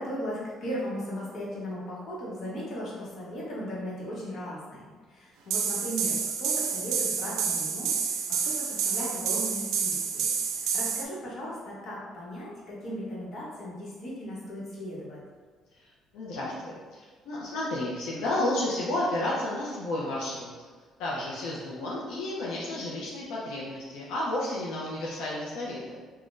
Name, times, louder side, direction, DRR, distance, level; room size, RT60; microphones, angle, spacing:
voice 1, 0.0-7.9 8.3-10.2 10.6-15.2, equal, 50° left, -6 dB, 1.0 m, -37 dB
sound 1, 5.5-11.0, right 6 dB, 90° right, 0.3 m, -29 dB
voice 2, 15.7-20.7 21.0-26.0, left 1 dB, 90° left, -5 dB, 0.5 m, -32 dB
3.6 x 2.2 x 2.5 m, 1.5 s
cardioid pair, 125°, 0 cm